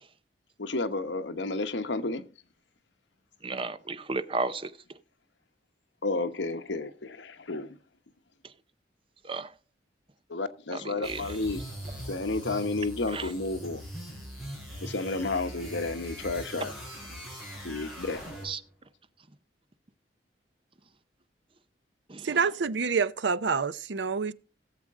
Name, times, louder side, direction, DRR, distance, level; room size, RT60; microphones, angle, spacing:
voice 1, 0.6-2.2 6.0-7.8 10.3-11.6 12.1-13.8 14.8-16.7 17.6-18.2, left 3 dB, 80° left, 1.1 m, -31 dB
voice 2, 3.4-4.7 9.2-9.5 10.7-11.2 13.1-13.2 18.4-18.6 22.1-22.4, right 3 dB, 30° right, 0.6 m, -33 dB
sound 1, 11.0-18.7, equal, ahead, 6.1 m, -41 dB
voice 3, 22.2-24.3, right 5 dB, 75° right, 0.6 m, -27 dB
17.5 x 7.6 x 3.6 m
head